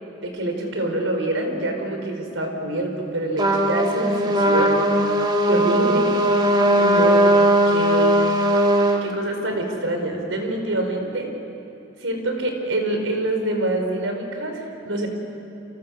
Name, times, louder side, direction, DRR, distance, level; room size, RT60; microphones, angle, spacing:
voice 1, 0.2-4.8 5.4-6.1 6.8-7.3 7.7-8.2 9.0-11.3 12.0-15.1, right 1 dB, 85° right, 3 dB, 4.9 m, -26 dB
Trumpet, 3.4-9.0, right 1 dB, 25° right, 2.4 m, -18 dB
30.0 x 27.0 x 6.7 m, 3.0 s
head